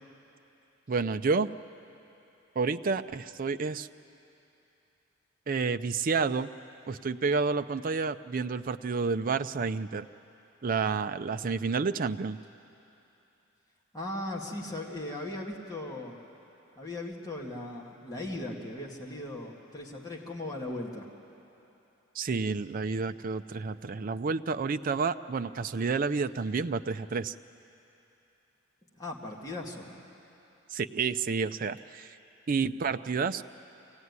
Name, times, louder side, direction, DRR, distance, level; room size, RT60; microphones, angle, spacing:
voice 1, 0.9-1.5 2.6-3.9 5.5-6.5 6.9-10.1 10.6-12.4 22.1-27.3 30.7-32.2 32.5-33.4, right 4 dB, 45° right, 10 dB, 0.5 m, -30 dB
voice 2, 13.9-16.2 16.8-21.1 29.0-30.0, left 1 dB, 20° left, -2 dB, 2.0 m, -38 dB
24.0 x 17.0 x 9.6 m, 2.9 s
head